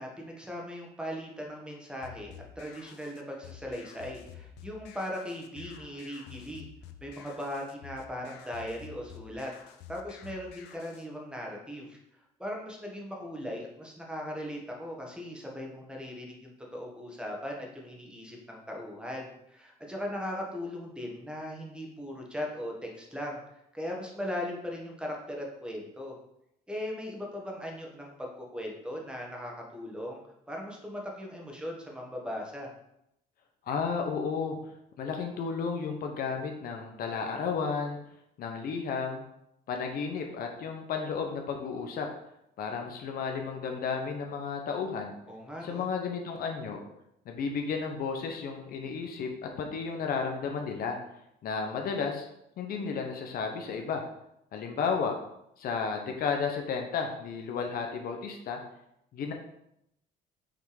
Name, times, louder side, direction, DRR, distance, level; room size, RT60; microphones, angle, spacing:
voice 1, 0.0-6.7 7.0-12.0 12.4-26.1 26.7-30.2 30.5-32.7 45.3-45.9, left 1 dB, 5° right, -1 dB, 1.4 m, -39 dB
sound 1, 2.0-11.1, left 9 dB, 85° left, 0.6 m, -50 dB
voice 2, 33.7-34.6 35.0-38.0 38.4-39.2 39.7-42.1 42.6-45.2 45.6-46.8 47.3-51.0 51.4-52.3 52.6-54.0 54.5-55.1 55.6-58.6 59.1-59.3, left 5 dB, 60° left, 3 dB, 0.9 m, -33 dB
5.8 x 3.5 x 4.8 m, 0.79 s
cardioid pair, 110°, 17 cm